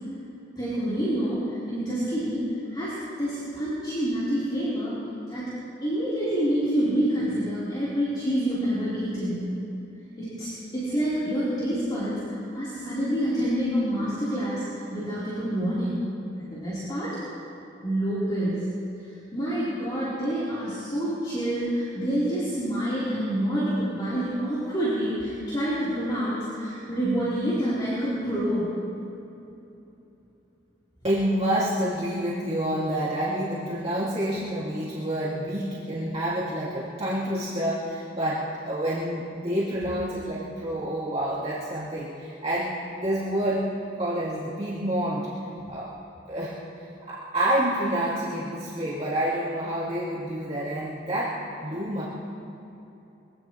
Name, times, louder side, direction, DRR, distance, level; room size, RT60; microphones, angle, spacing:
voice 1, 0.6-2.4 2.7-4.9 5.3-5.5 5.8-9.5 10.2-12.2 12.5-16.0 16.4-17.2 17.8-18.6 19.0-28.7, equal, 25° left, -12 dB, 3.9 m, -27 dB
voice 2, 31.0-43.7 44.0-45.3 45.7-45.9 46.3-46.5 47.0-51.3 51.6-52.1, right 1 dB, 35° right, -8 dB, 2.4 m, -28 dB
23.5 x 17.0 x 3.2 m, 2.9 s
head